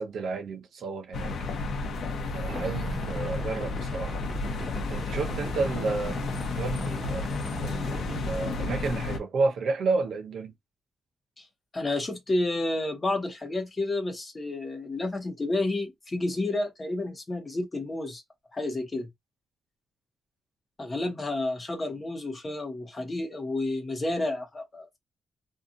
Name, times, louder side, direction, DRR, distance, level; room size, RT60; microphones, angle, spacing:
voice 1, 0.0-1.4 2.3-4.2 4.9-6.2 6.5-7.3 7.6-10.5, right 3 dB, 65° right, 0.6 m, -31 dB
sound 1, 1.1-9.2, left 3 dB, 70° left, 0.7 m, -32 dB
sound 2, 2.5-8.7, right 1 dB, 20° right, 0.6 m, -39 dB
voice 2, 11.7-18.2 18.5-19.1 20.8-25.0, left 2 dB, 20° left, 1.0 m, -30 dB
2.8 x 2.4 x 2.5 m
wide cardioid pair, 160°, 0 cm